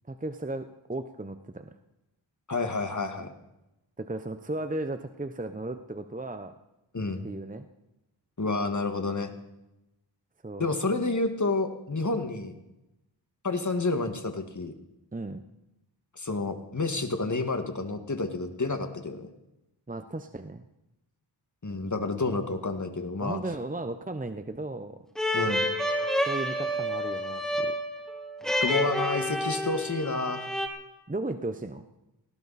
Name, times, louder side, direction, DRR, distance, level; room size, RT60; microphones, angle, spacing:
voice 1, 0.1-1.8 4.0-6.5 7.2-7.7 10.4-10.7 15.1-15.4 19.9-20.7 23.2-25.0 26.2-27.7 31.1-31.9, right 2 dB, 15° right, 9 dB, 0.9 m, -35 dB
voice 2, 2.5-3.3 6.9-7.3 8.4-9.3 10.6-12.5 13.4-14.7 16.2-19.3 21.6-23.4 25.3-25.7 28.6-30.5, left 3 dB, 40° left, 7 dB, 2.0 m, -29 dB
sound 1, 25.2-30.7, equal, ahead, 2.4 m, -29 dB
19.0 x 17.0 x 4.3 m, 0.92 s
cardioid pair, 50°, 47 cm